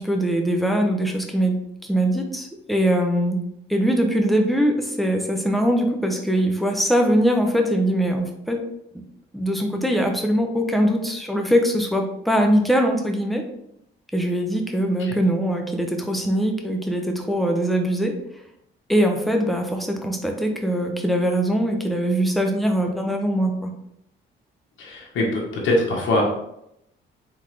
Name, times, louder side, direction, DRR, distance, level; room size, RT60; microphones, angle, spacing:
voice 1, 0.0-3.4 3.7-8.6 9.3-13.4 14.1-18.1 18.9-23.7, equal, ahead, 2 dB, 0.8 m, -22 dB
voice 2, 24.8-26.2, left 1 dB, 75° left, -2 dB, 1.2 m, -23 dB
3.7 x 3.7 x 3.3 m, 0.77 s
cardioid pair, 90°, 20 cm